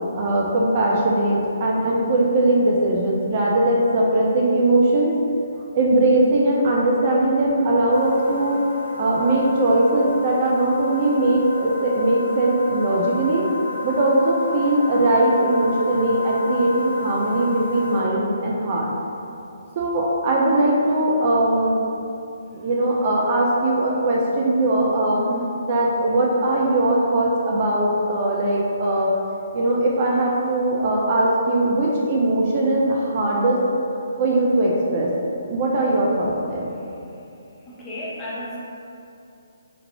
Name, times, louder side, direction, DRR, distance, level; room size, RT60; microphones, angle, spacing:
voice 1, 0.1-5.2 5.7-8.6 9.0-13.5 13.8-18.9 19.8-21.8 22.5-25.2 25.7-29.2 29.5-33.6 34.2-35.1 35.5-36.8, right 1 dB, 40° right, -3 dB, 0.4 m, -20 dB
sound 1, 7.9-18.0, left 2 dB, 80° right, 1.2 m, -32 dB
voice 2, 25.2-25.5 37.7-38.6, equal, 10° left, -9 dB, 0.8 m, -32 dB
4.4 x 2.5 x 2.8 m, 2.7 s
figure-of-eight pair, 135°, 0 cm